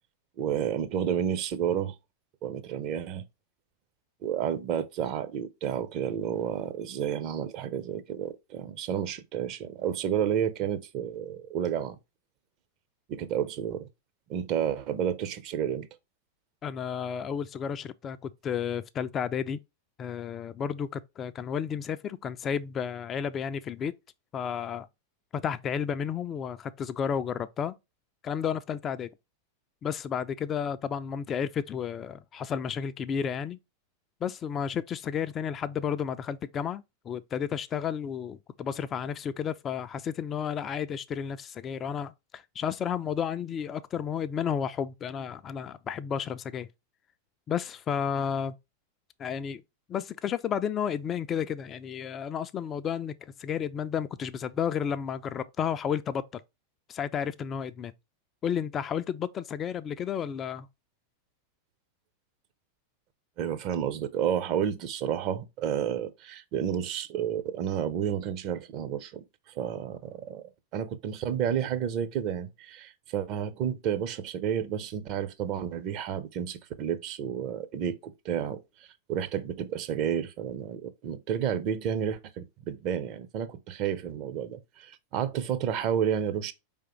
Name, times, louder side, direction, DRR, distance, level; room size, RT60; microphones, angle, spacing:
voice 1, 0.4-1.9 2.4-3.2 4.2-12.0 13.1-13.9 14.3-15.9 63.4-69.2 69.6-78.6 79.1-86.5, right 9 dB, 40° right, 0.6 m, -31 dB
voice 2, 16.6-19.6 20.0-23.9 24.3-24.9 25.3-27.8 28.2-29.1 29.8-33.6 34.2-46.7 47.5-48.6 49.2-49.6 49.9-56.4 56.9-57.9 58.4-60.7, left 8 dB, 25° left, 0.3 m, -32 dB
4.7 x 3.5 x 2.9 m
figure-of-eight pair, 90°, 0 cm